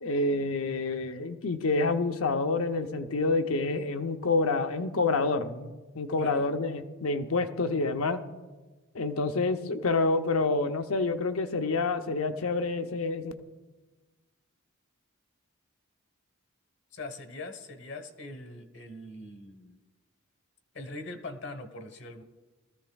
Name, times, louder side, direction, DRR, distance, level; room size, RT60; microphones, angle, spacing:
voice 1, 0.0-8.2 8.9-13.3, left 3 dB, 85° left, 7 dB, 0.7 m, -28 dB
voice 2, 6.2-6.5 16.9-19.8 20.7-22.2, left 2 dB, 55° left, 8 dB, 1.2 m, -42 dB
20.0 x 14.0 x 2.4 m, 1.2 s
head